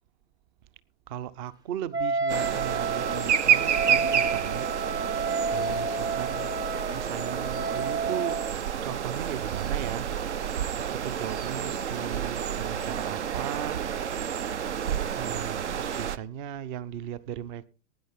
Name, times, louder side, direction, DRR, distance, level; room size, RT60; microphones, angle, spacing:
voice 1, 1.1-4.7 5.1-6.5 6.9-8.4 8.8-10.1 10.7-13.9 15.1-17.7, right 10 dB, 40° right, 0.8 m, -37 dB
Wind instrument woodwind instrument, 1.9-8.5, right 4 dB, 10° right, 0.5 m, -31 dB
sound 1, 2.3-16.2, right 8 dB, 70° right, 0.8 m, -29 dB
18.5 x 9.7 x 3.6 m
figure-of-eight pair, 100°, 36 cm